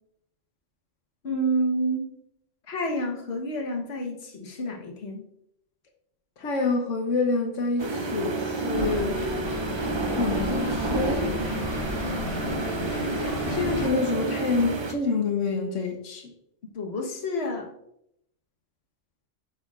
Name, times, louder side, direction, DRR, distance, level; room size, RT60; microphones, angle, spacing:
voice 1, 1.2-2.1 2.7-5.2 11.6-11.9 16.7-17.7, right 1 dB, 60° left, 1.5 m, -29 dB
voice 2, 6.4-9.2 10.2-11.3 13.5-16.2, left 4 dB, 85° left, 1.3 m, -27 dB
sound 1, 7.8-14.9, right 3 dB, 40° right, 0.4 m, -30 dB
sound 2, 8.7-13.9, left 1 dB, 30° left, 1.2 m, -33 dB
8.3 x 6.3 x 2.4 m
omnidirectional pair, 1.2 m